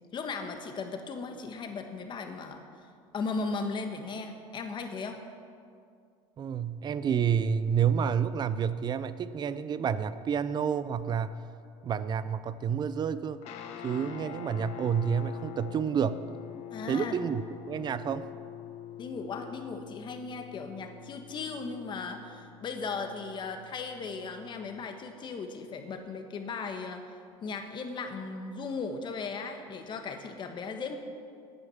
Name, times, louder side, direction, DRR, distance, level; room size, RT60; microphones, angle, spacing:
voice 1, 0.1-2.6 3.1-5.2 16.7-17.1 19.0-31.0, left 4 dB, 35° left, 6 dB, 1.4 m, -37 dB
voice 2, 6.4-11.3 11.8-13.4 13.8-16.2 16.9-17.4 17.7-18.3, right 7 dB, 35° right, 14 dB, 0.6 m, -29 dB
Guitar, 13.4-24.9, left 10 dB, 60° left, 1.0 m, -45 dB
9.5 x 9.0 x 7.1 m, 2.3 s
supercardioid pair, 110°, 13 cm